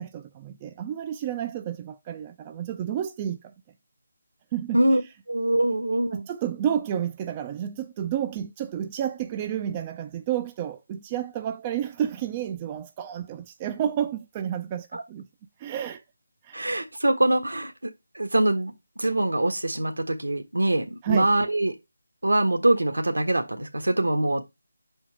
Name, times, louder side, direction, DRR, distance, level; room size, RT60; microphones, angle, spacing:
voice 1, 0.0-3.5 4.5-4.8 6.1-15.3 15.6-16.0 16.4-16.6 21.0-21.3, right 10 dB, 20° right, 0.4 m, -30 dB
voice 2, 5.3-6.3 14.9-15.0 16.5-21.7 22.2-24.4, right 1 dB, 80° right, 1.5 m, -24 dB
5.6 x 4.4 x 4.9 m
figure-of-eight pair, 160°, 0 cm